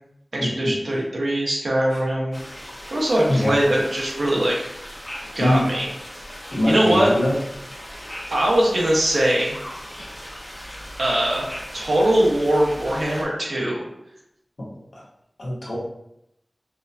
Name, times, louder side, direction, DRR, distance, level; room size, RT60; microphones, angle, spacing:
voice 1, 0.3-2.4 2.9-4.7 5.3-5.9 6.6-7.1 8.3-9.5 11.0-11.5 11.7-13.8, right 1 dB, 85° right, -3 dB, 1.0 m, -21 dB
sound 1, 2.3-13.2, equal, 20° left, 0.7 m, -38 dB
voice 2, 6.5-7.3 7.7-7.8 9.9-10.1 14.9-15.0 15.4-15.8, left 1 dB, 75° left, -5 dB, 1.1 m, -22 dB
4.7 x 2.2 x 2.6 m, 0.80 s
wide cardioid pair, 70°, 0 cm